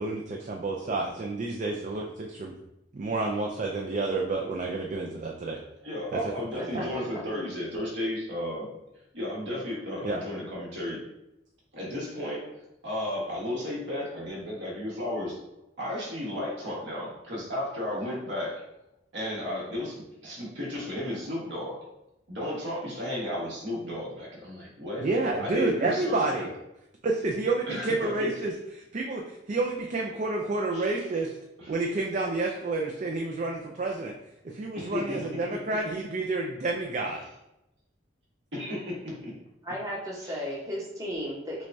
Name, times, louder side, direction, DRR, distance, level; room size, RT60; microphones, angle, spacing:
voice 1, 0.0-2.6 2.9-5.6 6.1-6.2 6.7-6.8 10.0-10.2 25.0-26.5 27.0-28.5 28.9-31.4 31.7-34.1 34.4-37.2, right 3 dB, 40° right, 0 dB, 0.4 m, -29 dB
voice 2, 5.8-8.7 9.1-11.0 11.7-12.4 12.8-15.4 15.8-18.5 19.1-20.0 20.2-21.8 22.3-25.1 25.4-26.5 27.7-28.3 30.7-31.0 31.6-31.7 34.7-35.2 38.5-39.4 40.2-40.4, left 1 dB, 65° right, -5 dB, 1.4 m, -33 dB
voice 3, 6.6-7.1 39.6-41.7, equal, 20° right, -4 dB, 0.9 m, -35 dB
6.0 x 2.2 x 2.6 m, 0.87 s
head